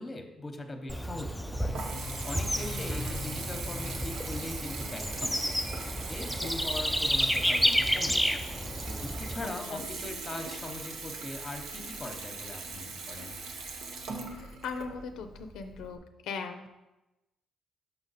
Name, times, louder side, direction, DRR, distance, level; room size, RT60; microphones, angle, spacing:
voice 1, 0.0-1.7 2.2-5.5 5.9-8.4 8.9-13.4, left 2 dB, 25° left, 5 dB, 0.9 m, -41 dB
Bird / Insect, 0.9-9.5, equal, ahead, 0.4 m, -31 dB
sound 1, 1.5-5.2, left 3 dB, 40° right, 0.9 m, -43 dB
Water tap faucet / Bathtub (filling or washing) / Trickle dribble, 1.7-16.0, right 3 dB, 80° right, 0.8 m, -41 dB
voice 2, 9.4-9.8 14.1-16.6, left 5 dB, 85° left, 6 dB, 0.5 m, -40 dB
5.6 x 5.1 x 4.1 m, 1.0 s
cardioid pair, 90°, 0 cm